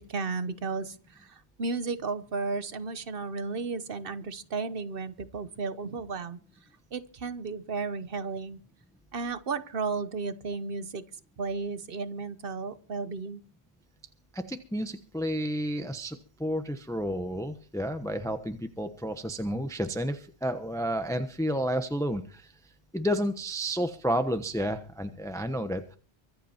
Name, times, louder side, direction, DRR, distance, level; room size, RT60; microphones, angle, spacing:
voice 1, 0.0-6.4 6.9-8.6 9.1-11.0 11.4-13.4, right 4 dB, 55° right, 1.2 m, -34 dB
voice 2, 14.3-22.5 22.9-26.0, equal, 5° left, 0.9 m, -31 dB
24.0 x 8.3 x 4.4 m
omnidirectional pair, 1.1 m